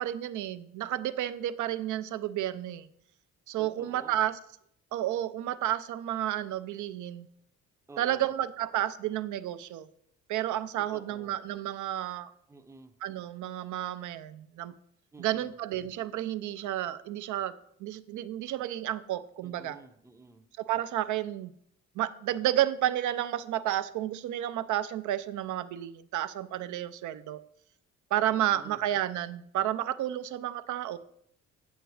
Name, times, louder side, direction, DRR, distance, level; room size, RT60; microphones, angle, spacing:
voice 1, 0.0-2.9 3.5-4.4 4.9-7.3 8.0-9.9 10.3-12.3 13.0-14.7 15.2-19.8 20.6-21.5 22.0-27.4 28.1-31.0, right 12 dB, 75° right, 13 dB, 0.5 m, -31 dB
voice 2, 3.6-4.2 7.9-8.3 10.8-11.3 12.5-13.0 15.1-15.5 19.4-20.5 28.5-28.8, right 3 dB, 10° right, 8 dB, 0.5 m, -51 dB
8.1 x 7.8 x 3.2 m, 0.70 s
cardioid pair, 90°, 30 cm